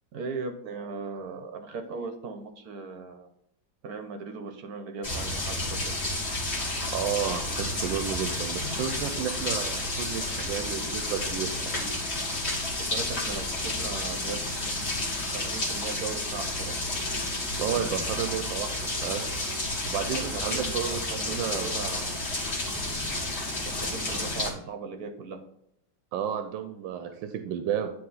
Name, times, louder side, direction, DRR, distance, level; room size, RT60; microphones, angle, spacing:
voice 1, 0.1-3.3 3.8-5.9 12.8-14.9 15.3-16.8 20.1-22.2 23.6-25.4, right 4 dB, 65° right, 5 dB, 1.1 m, -38 dB
sound 1, 5.0-24.5, left 2 dB, 40° left, 1.6 m, -31 dB
voice 2, 6.9-11.9 17.6-19.2 19.9-21.7 26.1-27.9, right 8 dB, 90° right, 7 dB, 1.3 m, -32 dB
9.6 x 3.3 x 3.9 m, 0.73 s
omnidirectional pair, 2.0 m